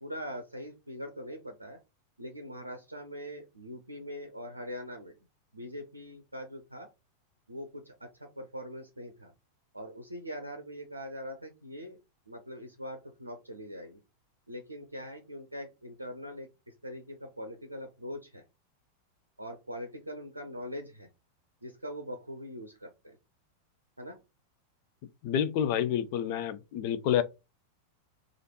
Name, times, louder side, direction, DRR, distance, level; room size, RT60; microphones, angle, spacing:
voice 1, 0.0-1.8 2.2-5.2 5.5-6.9 7.5-9.3 9.7-12.0 12.3-14.0 14.5-18.4 19.4-21.1 21.6-23.2 24.0-24.2, equal, 85° right, 0.6 m, -42 dB
voice 2, 25.2-27.2, left 9 dB, 45° left, 0.4 m, -28 dB
3.3 x 2.5 x 4.1 m
figure-of-eight pair, 90°, 0 cm